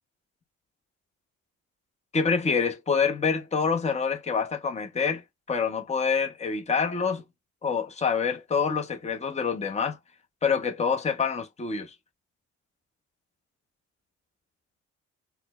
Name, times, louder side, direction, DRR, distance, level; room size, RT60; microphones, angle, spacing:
voice 1, 2.1-5.2 5.5-7.2 7.6-10.0 10.4-11.9, left 5 dB, 20° left, 1.0 m, -26 dB
4.1 x 2.2 x 2.4 m
supercardioid pair, 70°, 34 cm